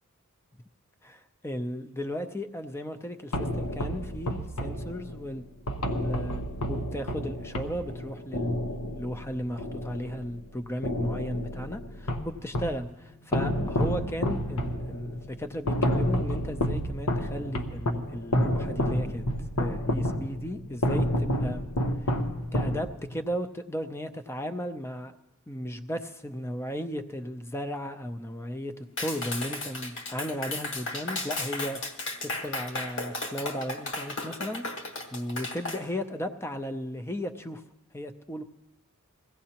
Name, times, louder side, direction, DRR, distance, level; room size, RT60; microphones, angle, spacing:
voice 1, 1.0-5.4 5.9-6.4 6.7-19.2 19.6-21.6 22.0-22.2 22.5-25.1 25.5-32.0 32.2-37.6 37.9-38.4, equal, 10° left, 8 dB, 0.5 m, -35 dB
sound 1, 3.3-10.4 10.8-12.8 13.3-23.2, equal, 85° left, 1.0 m, -30 dB
Clapping, 29.0-35.8, left 2 dB, 55° left, 1.4 m, -34 dB
22.0 x 16.0 x 2.9 m, 1.0 s
head